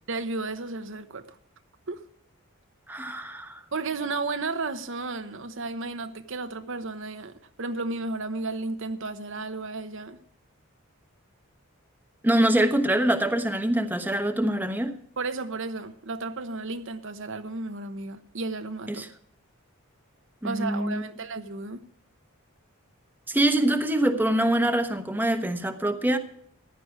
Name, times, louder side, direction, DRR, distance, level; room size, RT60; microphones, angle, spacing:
voice 1, 0.1-1.4 1.9-2.0 3.7-10.2 15.2-19.1 20.4-21.8, right 3 dB, 60° right, 1.0 m, -33 dB
voice 2, 2.9-3.6 12.2-14.9 18.9-19.1 20.4-21.0 23.3-26.2, right 1 dB, 10° right, 1.0 m, -24 dB
15.5 x 11.0 x 4.7 m
head